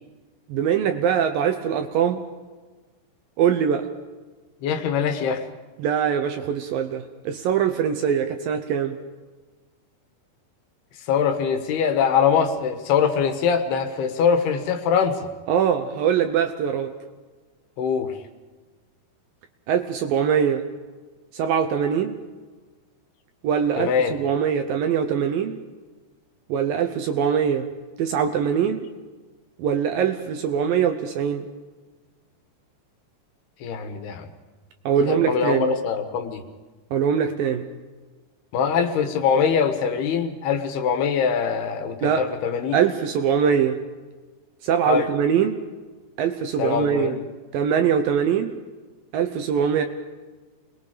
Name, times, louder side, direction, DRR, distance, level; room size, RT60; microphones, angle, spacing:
voice 1, 0.5-2.2 3.4-3.9 5.8-9.0 15.5-16.9 19.7-20.6 21.3-22.2 23.4-25.6 26.5-27.7 28.0-28.9 29.6-31.5 34.9-35.7 36.9-37.7 42.0-42.2 42.7-43.8 44.6-45.6 46.2-47.1 47.5-48.5 49.1-49.8, right 8 dB, 70° right, 7 dB, 2.3 m, -22 dB
voice 2, 4.6-5.4 11.1-15.3 17.8-18.1 23.8-24.1 33.6-34.3 35.0-36.4 38.5-42.8 44.8-45.1 46.6-47.3, left 6 dB, 70° left, 7 dB, 3.2 m, -23 dB
27.5 x 21.0 x 5.1 m, 1.3 s
omnidirectional pair, 4.9 m